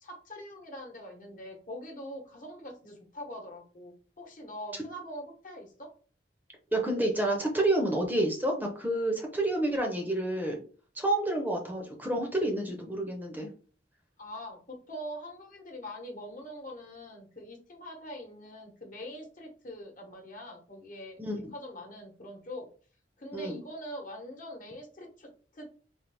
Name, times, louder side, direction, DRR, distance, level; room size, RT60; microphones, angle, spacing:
voice 1, 0.0-5.9 14.2-21.2 21.5-22.7 23.2-25.7, equal, 50° left, 2 dB, 1.1 m, -43 dB
voice 2, 6.7-10.6 11.0-13.5 21.2-21.4 23.3-23.6, right 1 dB, 10° right, 2 dB, 0.7 m, -29 dB
3.9 x 2.5 x 3.4 m, 0.40 s
head